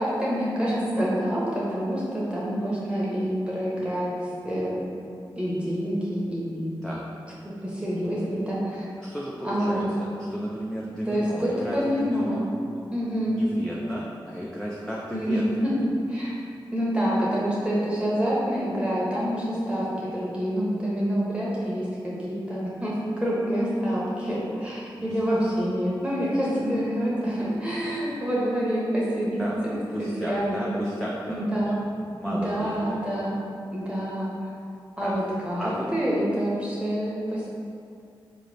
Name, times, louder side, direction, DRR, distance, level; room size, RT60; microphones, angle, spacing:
voice 1, 0.0-4.1 4.4-4.8 5.4-6.8 7.6-8.9 9.4-9.9 11.1-12.4 12.9-13.4 15.1-15.7 16.1-16.3 16.7-30.9 31.3-31.8 32.3-33.3 33.7-34.3 35.0-37.5, equal, 10° right, -7 dB, 0.9 m, -27 dB
voice 2, 9.0-12.5 13.2-15.6 25.0-25.2 29.4-29.6 29.9-31.8 32.1-33.0 35.0-35.2 35.6-35.9, equal, 5° left, -5 dB, 0.5 m, -34 dB
3.9 x 3.1 x 2.7 m, 2.4 s
cardioid pair, 40°, 9 cm